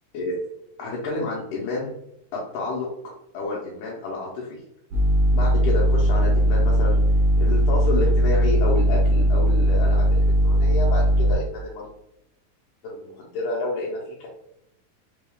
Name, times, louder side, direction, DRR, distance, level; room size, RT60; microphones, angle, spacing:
voice 1, 0.8-1.9 2.3-4.6 5.3-7.0 7.4-11.9 12.8-14.3, left 2 dB, 85° left, -4 dB, 2.2 m, -30 dB
sound 1, 4.9-11.3, equal, 80° right, 1.4 m, -19 dB
5.1 x 2.3 x 3.4 m, 0.80 s
omnidirectional pair, 3.5 m